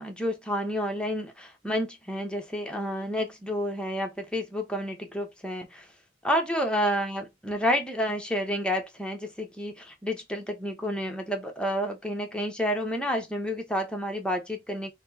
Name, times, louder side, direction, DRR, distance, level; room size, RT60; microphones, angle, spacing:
voice 1, 0.0-5.9 6.2-14.9, equal, 5° left, 0.8 m, -30 dB
4.3 x 2.1 x 4.1 m
head